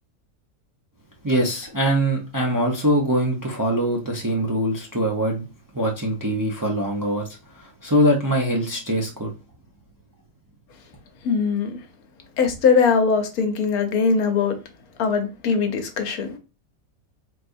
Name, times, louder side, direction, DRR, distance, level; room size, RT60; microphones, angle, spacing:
voice 1, 1.2-5.5 5.7-7.2 7.6-9.3, equal, 20° right, 0.5 m, -23 dB
voice 2, 11.2-11.8 12.4-14.5 15.0-16.3, left 5 dB, 75° left, 1.3 m, -21 dB
4.1 x 3.1 x 2.6 m
omnidirectional pair, 1.6 m